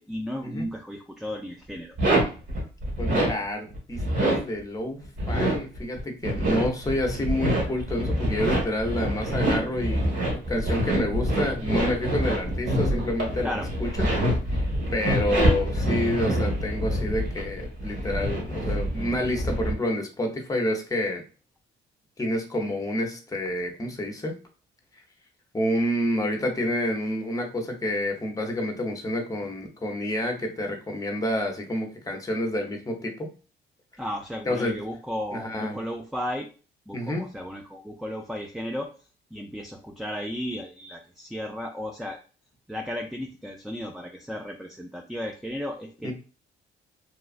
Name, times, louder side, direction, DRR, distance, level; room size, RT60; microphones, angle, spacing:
voice 1, 0.0-2.0 13.4-13.7 34.0-36.5 36.9-38.9 39.3-42.2 42.7-46.1, equal, ahead, 3 dB, 0.3 m, -34 dB
sound 1, 2.0-3.3 3.7-4.4 5.1-19.7, right 1 dB, 60° right, 1.4 m, -26 dB
voice 2, 3.0-13.5 13.8-14.1 14.5-21.2 22.2-24.3 25.5-33.3 34.5-34.8 35.3-35.8 36.9-37.3 46.0-46.1, left 1 dB, 15° left, 3 dB, 0.7 m, -28 dB
3.0 x 2.3 x 2.4 m, 0.36 s
cardioid pair, 90°, 20 cm